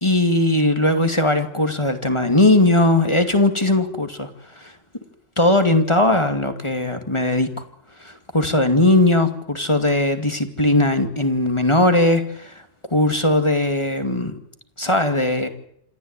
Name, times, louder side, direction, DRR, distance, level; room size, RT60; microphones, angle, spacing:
voice 1, 0.0-4.3 4.6-4.7 5.4-7.5 8.0-12.5 12.9-14.3 14.8-15.5, left 1 dB, 25° left, 7 dB, 2.4 m, -19 dB
28.0 x 14.5 x 9.0 m, 0.72 s
omnidirectional pair, 1.3 m